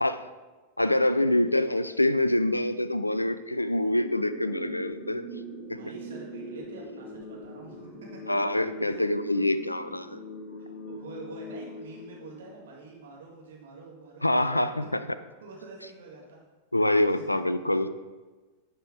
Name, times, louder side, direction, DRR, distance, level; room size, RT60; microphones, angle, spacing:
voice 1, 0.8-5.2 5.7-5.8 8.3-10.2 14.2-15.0 16.7-17.9, left 1 dB, 85° left, 13 dB, 0.3 m, -25 dB
sound 1, 3.9-12.9, left 1 dB, 65° left, 2.0 m, -42 dB
voice 2, 5.7-8.2 8.8-9.0 10.6-14.4 15.4-16.4 17.1-17.2, right 4 dB, 60° right, -2 dB, 1.9 m, -47 dB
11.0 x 4.4 x 3.6 m, 1.3 s
figure-of-eight pair, 90°, 0 cm